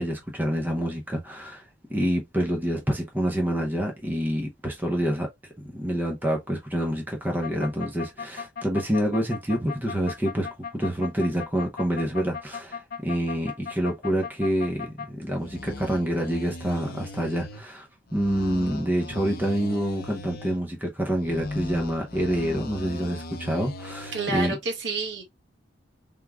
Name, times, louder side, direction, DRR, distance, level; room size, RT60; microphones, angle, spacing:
voice 1, 0.0-1.6 1.9-5.3 5.7-10.5 10.7-17.9 18.1-24.6, equal, 10° right, 0.8 m, -27 dB
sound 1, 7.4-15.1 15.4-17.6 18.1-20.6 21.1-24.5, left 3 dB, 55° left, 0.8 m, -38 dB
voice 2, 24.1-25.2, right 3 dB, 65° right, 1.8 m, -29 dB
4.6 x 3.6 x 2.2 m
head